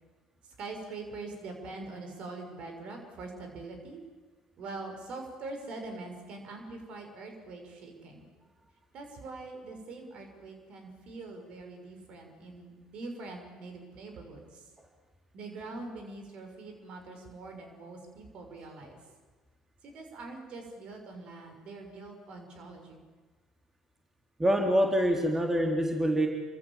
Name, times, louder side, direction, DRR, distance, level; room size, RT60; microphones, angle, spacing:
voice 1, 0.6-4.0 4.6-8.3 8.9-14.6 15.3-19.0 19.8-23.0, right 3 dB, 50° right, 4 dB, 6.6 m, -43 dB
voice 2, 24.4-26.3, equal, 15° right, 2 dB, 3.7 m, -25 dB
29.0 x 25.5 x 7.6 m, 1.4 s
figure-of-eight pair, 50°, 2 cm